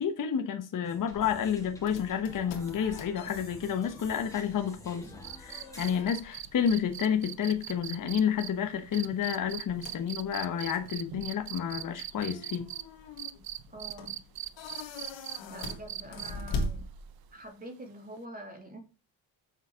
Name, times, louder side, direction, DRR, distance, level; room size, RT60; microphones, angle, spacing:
voice 1, 0.0-5.1 5.4-12.7, left 8 dB, 45° left, 1.1 m, -30 dB
sound 1, 0.8-6.0, left 1 dB, 5° left, 2.2 m, -49 dB
sound 2, 1.1-17.5, left 2 dB, 75° left, 1.9 m, -43 dB
sound 3, 5.2-12.8 13.2-16.5 18.2-18.3, right 12 dB, 55° right, 0.7 m, -40 dB
voice 2, 13.7-14.2 15.5-16.8 17.3-18.8, right 1 dB, 20° right, 2.6 m, -45 dB
7.2 x 5.8 x 4.9 m
cardioid pair, 115°, 45 cm